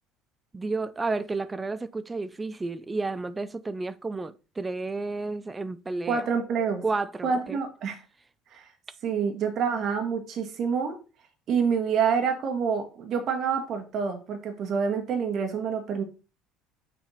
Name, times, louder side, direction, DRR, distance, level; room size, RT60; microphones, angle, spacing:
voice 1, 0.5-6.3 6.8-7.6, right 3 dB, 20° right, 0.5 m, -31 dB
voice 2, 6.1-6.8 7.2-8.0 8.5-8.7 9.0-11.0 11.5-16.0, right 6 dB, 50° right, 1.2 m, -27 dB
6.2 x 3.4 x 5.5 m
hypercardioid pair, 65°, 0 cm